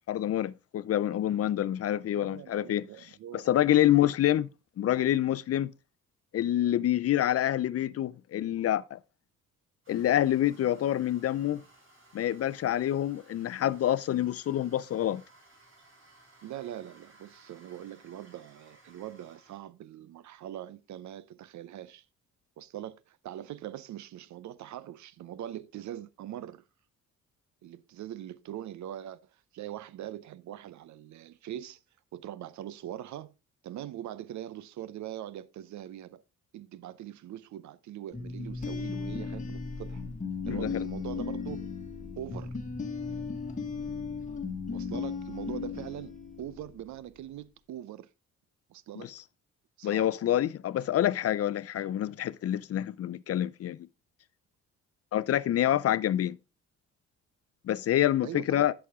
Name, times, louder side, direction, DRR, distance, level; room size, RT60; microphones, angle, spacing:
voice 1, 0.1-2.9 3.3-4.5 4.8-5.7 6.3-9.0 9.9-11.6 12.1-15.2 40.5-40.9 49.0-49.2 49.8-53.9 55.1-56.4 57.6-58.7, left 12 dB, 50° left, 0.5 m, -27 dB
voice 2, 2.1-3.9 16.4-22.0 22.6-26.6 27.6-31.8 32.1-33.3 33.6-36.2 36.5-40.0 40.5-41.6 42.2-42.6 43.5-43.7 44.7-48.1 48.7-49.1 49.8-50.1 58.2-58.7, right 12 dB, 70° right, 0.7 m, -42 dB
Toilet flush, 9.8-19.6, right 2 dB, 45° right, 4.3 m, -59 dB
sound 1, 38.1-46.9, left 5 dB, 25° left, 1.7 m, -36 dB
11.0 x 6.2 x 3.6 m
cardioid pair, 90°, 30 cm